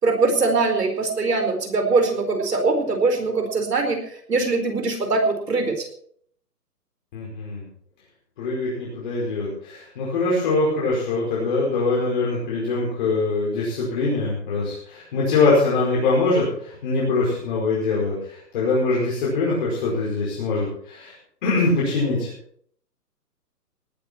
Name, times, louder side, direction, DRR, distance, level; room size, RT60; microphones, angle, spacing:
voice 1, 0.0-5.9, right 3 dB, 75° right, 6 dB, 4.7 m, -22 dB
voice 2, 7.1-7.7 8.4-21.1 21.4-22.3, left 3 dB, 30° left, -6 dB, 5.1 m, -23 dB
19.0 x 11.5 x 4.5 m, 0.62 s
hypercardioid pair, 165°, 49 cm